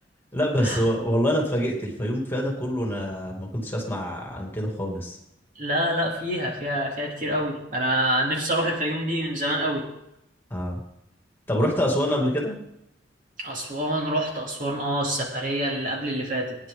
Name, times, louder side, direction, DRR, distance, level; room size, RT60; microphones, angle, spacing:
voice 1, 0.3-5.2 10.5-10.8 11.5-12.6, equal, 10° left, -1 dB, 2.6 m, -25 dB
voice 2, 5.6-9.8 13.4-16.6, equal, 45° right, -1 dB, 2.8 m, -26 dB
20.5 x 10.0 x 3.9 m, 0.82 s
head